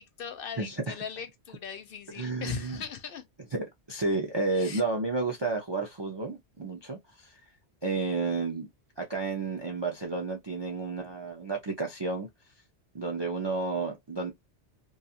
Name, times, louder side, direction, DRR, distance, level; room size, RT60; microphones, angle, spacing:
voice 1, 0.0-3.3 4.5-4.8, left 7 dB, 65° left, 0.7 m, -39 dB
voice 2, 0.6-1.0 2.2-2.8 3.5-7.4 7.8-8.7 9.0-12.3 12.9-14.3, right 3 dB, 45° right, 0.3 m, -31 dB
2.5 x 2.3 x 2.7 m
omnidirectional pair, 1.2 m